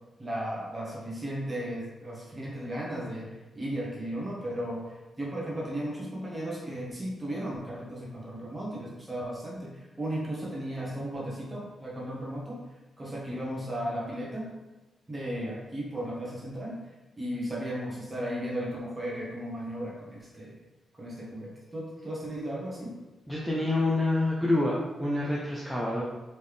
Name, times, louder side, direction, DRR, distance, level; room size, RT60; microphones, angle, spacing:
voice 1, 0.2-3.3 3.5-4.8 5.2-9.7 10.0-12.6 13.0-14.5 15.1-16.7 17.2-20.5 21.0-22.9, right 1 dB, 20° right, -4 dB, 1.2 m, -35 dB
voice 2, 23.3-26.0, left 2 dB, ahead, -6 dB, 0.6 m, -27 dB
4.2 x 3.5 x 3.3 m, 1.1 s
wide cardioid pair, 150°, 0 cm